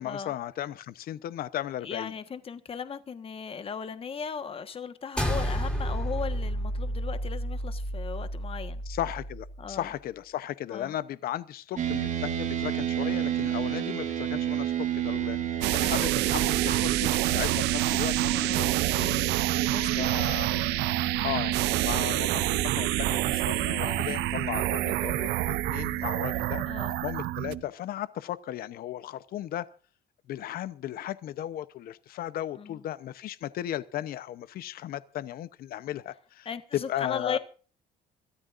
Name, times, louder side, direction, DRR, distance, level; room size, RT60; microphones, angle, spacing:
voice 1, 0.0-2.1 8.9-18.7 19.7-20.7 21.2-26.6 27.0-29.7 30.3-37.4, left 12 dB, 60° left, 0.8 m, -36 dB
voice 2, 1.8-8.8 9.6-9.9 10.7-10.9 18.3-18.6 19.0-19.3 19.7-20.3 23.8-24.2 26.7-27.0 32.6-32.8 36.4-37.4, left 6 dB, 35° left, 1.4 m, -37 dB
sound 1, 5.2-9.7, equal, 5° left, 3.4 m, -31 dB
sound 2, 11.7-27.6, right 10 dB, 50° right, 3.1 m, -31 dB
sound 3, 15.6-27.5, right 18 dB, 90° right, 0.6 m, -28 dB
26.0 x 14.0 x 2.6 m
cardioid pair, 110°, 17 cm